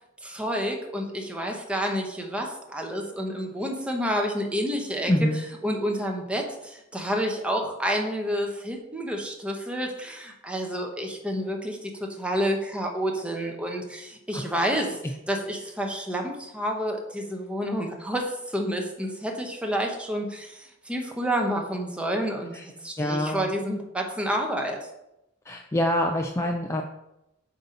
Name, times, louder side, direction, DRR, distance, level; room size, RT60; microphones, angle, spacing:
voice 1, 0.2-5.1 5.6-15.0 15.3-24.8, equal, 5° right, 1 dB, 0.8 m, -29 dB
voice 2, 5.1-5.5 14.3-14.4 14.7-14.9 22.5-22.6 23.0-23.5 25.4-26.8, left 1 dB, 15° left, 2 dB, 0.4 m, -26 dB
7.8 x 2.8 x 5.1 m, 0.88 s
head